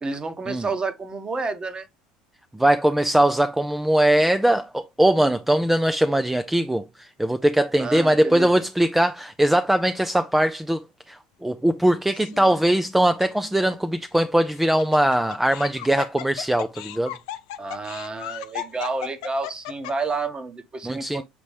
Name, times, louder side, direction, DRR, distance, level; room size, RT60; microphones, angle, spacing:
voice 1, 0.0-1.9 7.8-8.5 17.6-21.2, right 3 dB, 25° right, 1.2 m, -30 dB
voice 2, 2.5-10.8 11.1-17.2 20.8-21.2, right 1 dB, 5° right, 0.5 m, -21 dB
Laughter, 12.1-12.6 13.2-13.3 14.5-20.1, left 13 dB, 70° left, 0.6 m, -35 dB
7.0 x 4.1 x 3.2 m
hypercardioid pair, 70°, 4 cm